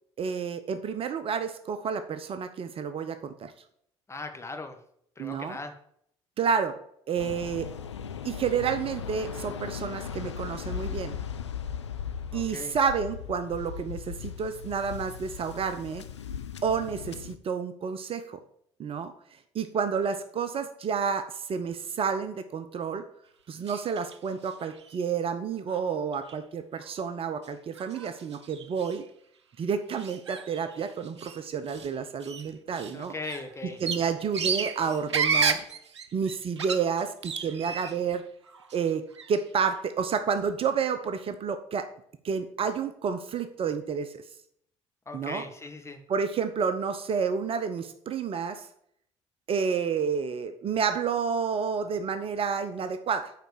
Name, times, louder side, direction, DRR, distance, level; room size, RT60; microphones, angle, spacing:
voice 1, 0.2-3.5 5.2-5.6 6.4-6.8 7.1-7.7 8.2-11.2 12.3-16.0 16.6-18.4 18.8-19.1 19.5-23.0 23.5-29.0 29.6-33.1 33.8-35.6 36.1-38.2 38.7-41.9 42.2-44.2 45.1-45.4 46.1-48.7 49.5-53.3, right 6 dB, 40° right, 10 dB, 0.8 m, -30 dB
voice 2, 4.1-4.8 5.2-5.7 12.3-12.7 32.7-33.8 45.0-46.0, left 3 dB, 20° left, 5 dB, 1.7 m, -39 dB
Waves surf, 7.2-17.4, left 7 dB, 85° left, 0.5 m, -38 dB
sound 1, 23.6-24.2 24.5-25.0 25.7-25.8 26.1-26.3 26.8-26.9 27.4-27.5 27.7-29.0 29.9-31.4 31.7-31.9 32.2-38.1 38.5-39.4, right 5 dB, 80° right, 0.6 m, -33 dB
9.2 x 4.2 x 7.2 m, 0.68 s
figure-of-eight pair, 50°, 14 cm